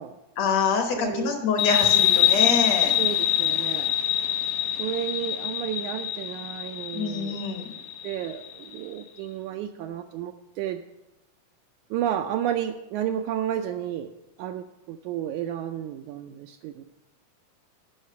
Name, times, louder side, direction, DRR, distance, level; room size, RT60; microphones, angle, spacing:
voice 1, 0.4-3.0 6.9-7.7, left 5 dB, 60° left, 4 dB, 2.1 m, -26 dB
voice 2, 0.9-1.4 3.0-3.9 4.7-7.4 8.0-10.8 11.9-14.1 14.4-16.8, right 10 dB, 80° right, 6 dB, 1.8 m, -32 dB
sound 1, 1.6-8.8, left 11 dB, 80° left, 2.3 m, -25 dB
10.0 x 5.7 x 6.7 m, 0.93 s
omnidirectional pair, 3.7 m